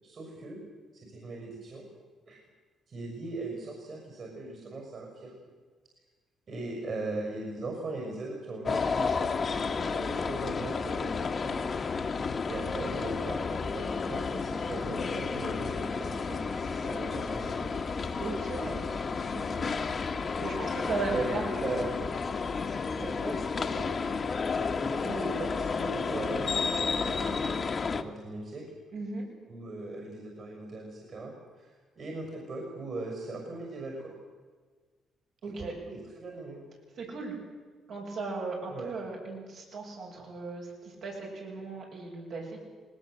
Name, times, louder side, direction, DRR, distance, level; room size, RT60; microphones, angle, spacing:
voice 1, 0.0-0.6 0.9-1.8 2.3-2.4 2.9-5.3 6.5-11.6 12.5-17.6 20.8-21.9 23.0-24.0 24.8-28.6 29.5-31.7 31.9-34.1 35.4-36.6 38.7-38.9, right 2 dB, 50° right, 1 dB, 6.4 m, -39 dB
sound 1, 8.7-28.0, left 5 dB, 40° left, 1.4 m, -31 dB
voice 2, 18.2-18.8 19.3-19.7 20.4-21.5 25.0-25.3 28.9-29.2 35.4-35.7 37.0-37.3 37.9-42.6, right 3 dB, 70° right, -2 dB, 7.9 m, -37 dB
20.0 x 19.5 x 8.1 m, 1.5 s
cardioid pair, 90°, 0 cm